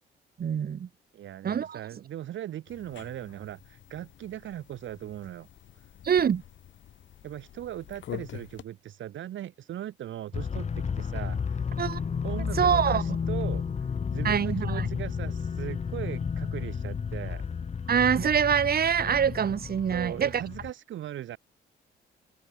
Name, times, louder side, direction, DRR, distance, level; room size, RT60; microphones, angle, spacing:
voice 1, 0.4-0.9 1.4-1.8 6.0-6.4 11.8-12.0 12.6-13.0 14.2-14.9 17.9-20.4, right 8 dB, 50° right, 2.3 m, -25 dB
voice 2, 1.1-5.5 7.2-11.6 12.2-13.6 14.1-17.4 19.9-21.4, right 12 dB, 75° right, 3.1 m, -39 dB
sound 1, 2.7-8.6, left 11 dB, 70° left, 3.2 m, -46 dB
sound 2, 10.3-20.7, left 6 dB, 35° left, 1.0 m, -32 dB
cardioid pair, 90°, 20 cm